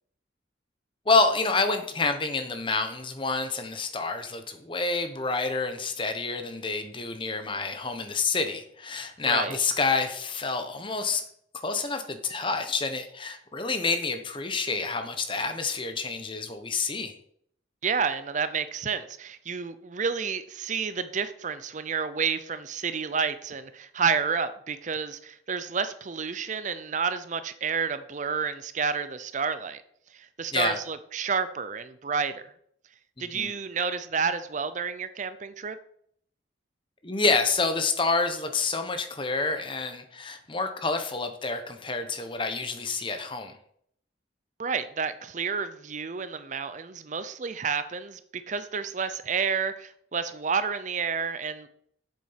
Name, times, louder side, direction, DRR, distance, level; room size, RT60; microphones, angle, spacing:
voice 1, 1.1-11.2 11.6-17.1 30.5-30.8 33.3-33.5 37.0-43.5, left 4 dB, 25° left, 7 dB, 1.0 m, -28 dB
voice 2, 9.2-9.6 17.8-29.8 30.1-32.4 33.2-35.8 44.6-51.7, right 5 dB, 40° right, 12 dB, 0.5 m, -30 dB
7.4 x 7.3 x 5.7 m, 0.67 s
head